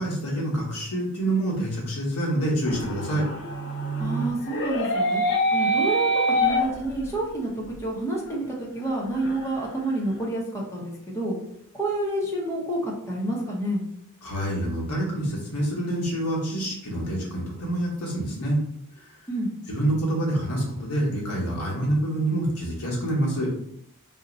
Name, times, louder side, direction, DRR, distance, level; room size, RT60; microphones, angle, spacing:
voice 1, 0.0-3.3 14.2-18.6 19.7-23.5, right 1 dB, 85° left, -3 dB, 1.1 m, -26 dB
sound 1, 2.6-7.3 7.7-7.8 8.3-8.4 8.7-9.9, equal, 55° left, 0.4 m, -26 dB
voice 2, 4.0-5.2 5.5-11.4 11.7-13.8 19.3-19.5, right 1 dB, 10° left, -4 dB, 0.6 m, -29 dB
2.7 x 2.1 x 3.8 m, 0.72 s
head